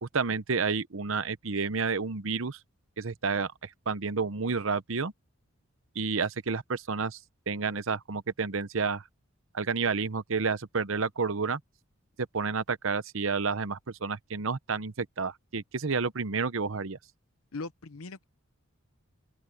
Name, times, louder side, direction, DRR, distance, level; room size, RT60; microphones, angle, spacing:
voice 1, 0.0-2.6 3.0-5.1 5.9-7.2 7.5-9.0 9.5-11.6 12.3-17.0, right 4 dB, 70° right, 0.9 m, -30 dB
voice 2, 17.5-18.2, left 3 dB, 85° left, 0.8 m, -39 dB
open air
head